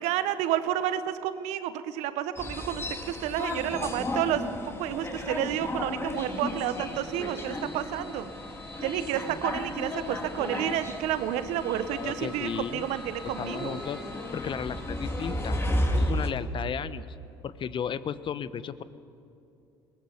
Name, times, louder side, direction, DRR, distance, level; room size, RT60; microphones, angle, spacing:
voice 1, 0.0-4.4 4.8-8.3 8.8-13.8, right 11 dB, 70° right, 12 dB, 1.2 m, -30 dB
sound 1, 2.4-16.3, left 1 dB, 20° left, 3.0 m, -34 dB
sound 2, 6.1-15.7, left 1 dB, ahead, 2.9 m, -48 dB
voice 2, 11.9-12.8 13.2-14.0 14.3-15.6 15.9-17.2 17.4-18.8, left 8 dB, 45° left, 15 dB, 1.0 m, -34 dB
22.0 x 19.0 x 7.3 m, 2.6 s
hypercardioid pair, 65°, 12 cm